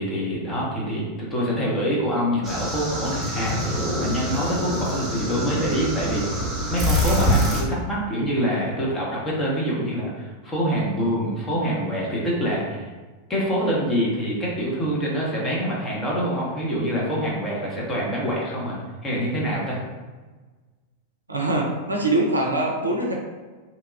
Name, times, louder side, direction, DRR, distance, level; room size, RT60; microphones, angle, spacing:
voice 1, 0.0-12.9 13.3-18.8 19.0-19.8, equal, 20° left, -5 dB, 0.9 m, -25 dB
sound 1, 2.4-7.6, left 1 dB, 20° right, 1.0 m, -25 dB
voice 2, 21.3-23.1, right 2 dB, 80° right, 0 dB, 0.4 m, -23 dB
2.9 x 2.2 x 2.4 m, 1.3 s
figure-of-eight pair, 90°, 0 cm